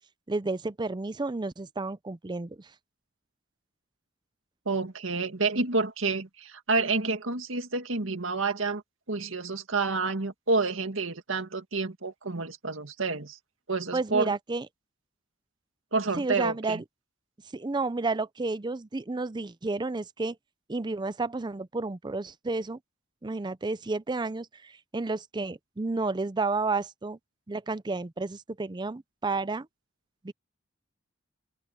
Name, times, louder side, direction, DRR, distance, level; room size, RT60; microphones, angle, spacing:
voice 1, 0.3-2.7 13.9-14.7 16.2-16.8 17.5-20.4 20.7-22.8 23.2-27.2 27.5-29.7 30.2-30.3, right 3 dB, 20° right, 0.5 m, -31 dB
voice 2, 4.7-8.8 9.1-13.4 13.7-14.3 15.9-16.8, right 3 dB, 75° right, 2.0 m, -29 dB
open air
head